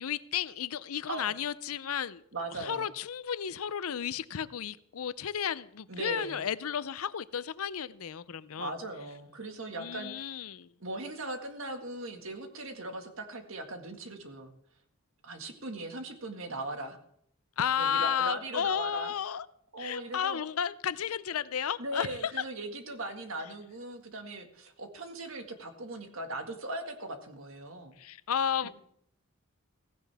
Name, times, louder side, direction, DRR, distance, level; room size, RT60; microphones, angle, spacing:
voice 1, 0.0-2.2 2.6-8.7 9.7-10.7 17.6-19.5 19.8-22.4 28.0-28.7, left 8 dB, 85° left, 16 dB, 0.6 m, -33 dB
voice 2, 2.3-2.9 5.9-6.4 8.6-10.3 10.8-14.5 15.2-17.0 17.8-19.1 19.7-20.4 21.8-27.9 28.6-28.7, right 2 dB, 65° right, 5 dB, 1.9 m, -39 dB
16.0 x 16.0 x 3.5 m, 0.69 s
head